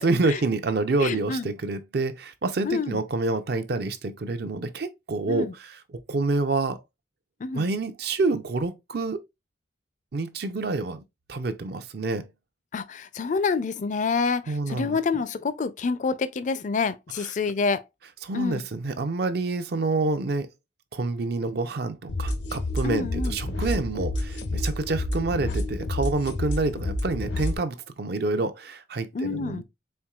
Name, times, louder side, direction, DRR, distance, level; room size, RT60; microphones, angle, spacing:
voice 1, 0.0-5.8 6.1-6.8 7.5-9.2 10.1-11.0 11.3-12.3 14.5-15.0 18.2-20.5 20.9-29.6, right 3 dB, 60° right, 0.5 m, -27 dB
voice 2, 1.0-1.5 2.6-3.0 5.3-5.5 7.4-7.7 12.7-17.8 18.3-18.6 22.8-23.4 29.1-29.6, left 4 dB, 45° left, 0.4 m, -27 dB
sound 1, 22.1-27.6, left 1 dB, 75° left, 0.7 m, -29 dB
4.4 x 3.6 x 2.3 m
head